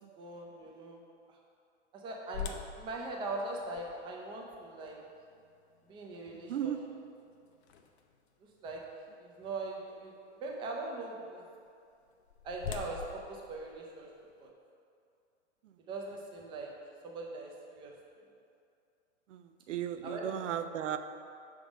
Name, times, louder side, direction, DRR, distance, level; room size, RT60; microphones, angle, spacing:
voice 1, 0.2-1.0 1.3-1.4 1.9-5.0 5.9-6.8 8.6-8.8 9.2-10.1 10.4-11.4 12.4-14.1 14.4-14.5 15.9-16.7 17.0-17.9 20.0-20.4, right 2 dB, 15° right, -1 dB, 0.5 m, -41 dB
sound 1, 2.3-8.3 8.8-8.9 9.5-9.8 11.8-14.5, left 8 dB, 65° left, 0.6 m, -46 dB
voice 2, 6.5-6.8 19.3-21.0, right 10 dB, 90° right, 9 dB, 0.5 m, -35 dB
5.9 x 3.7 x 5.0 m, 2.4 s
hypercardioid pair, 140°, 35 cm